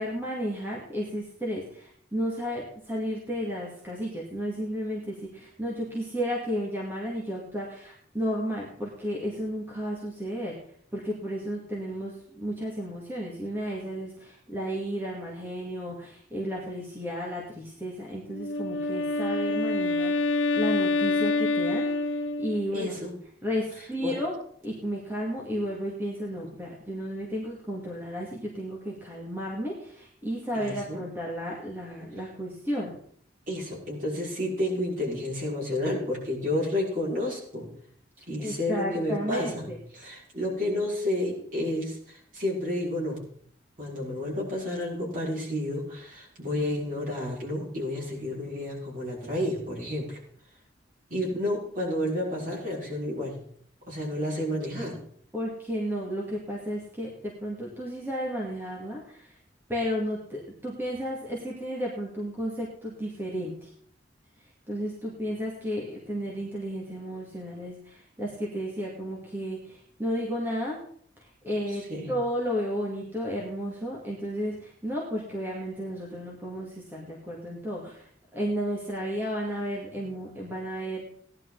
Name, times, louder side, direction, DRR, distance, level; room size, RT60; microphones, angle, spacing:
voice 1, 0.0-10.6 10.9-23.0 23.4-24.3 24.6-32.9 38.2-40.1 51.3-51.5 55.3-59.4 59.7-63.7 64.4-70.8 71.2-81.0, equal, 10° right, -4 dB, 2.3 m, -33 dB
Wind instrument woodwind instrument, 18.3-22.8, left 2 dB, 85° left, 1.2 m, -27 dB
voice 2, 22.7-23.1 24.0-24.2 30.5-31.0 33.5-37.7 38.3-43.2 43.8-50.2 51.1-53.4 53.9-55.0 71.7-72.2, left 1 dB, 45° right, -3 dB, 5.5 m, -31 dB
17.5 x 11.0 x 4.1 m, 0.62 s
head